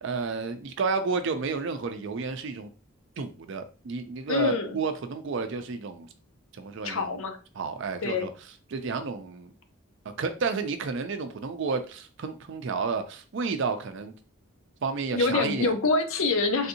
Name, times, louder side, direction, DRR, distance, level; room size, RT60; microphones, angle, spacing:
voice 1, 0.0-2.7 3.2-6.1 6.5-7.2 7.6-8.3 8.7-9.5 10.0-14.1 14.8-15.7, right 4 dB, 55° right, 9 dB, 0.4 m, -31 dB
voice 2, 4.3-4.8 6.8-7.4 8.0-8.3 15.1-16.7, left 3 dB, 65° left, 6 dB, 0.6 m, -25 dB
3.5 x 2.6 x 2.7 m, 0.35 s
head